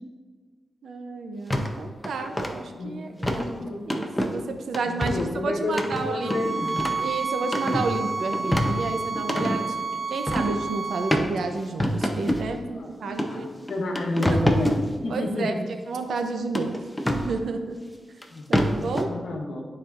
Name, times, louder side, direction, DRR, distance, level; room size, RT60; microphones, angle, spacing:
voice 1, 0.8-3.5 3.9-6.4 7.0-13.5 15.1-15.5 15.9-16.8 17.1-17.8 18.5-19.1, right 3 dB, 85° right, 6 dB, 0.6 m, -31 dB
sound 1, 1.5-1.7 2.0-2.5 3.2-3.5 3.9-4.3 4.7-5.3 5.7-7.1 7.4-7.9 8.3-9.6 10.3-10.6 11.1-11.3 11.8-12.5 13.2-13.3 13.7-14.8 16.5-17.3 18.2-18.3 18.5-19.0, equal, 10° left, 0.7 m, -25 dB
voice 2, 2.8-3.9 4.9-6.9 12.7-15.6 18.3-18.5 19.0-19.7, left 2 dB, 75° left, 1 dB, 1.1 m, -30 dB
sound 2, 6.2-11.2, right 4 dB, 45° right, 0.4 m, -30 dB
12.5 x 4.3 x 2.5 m, 1.5 s
wide cardioid pair, 95°, 0 cm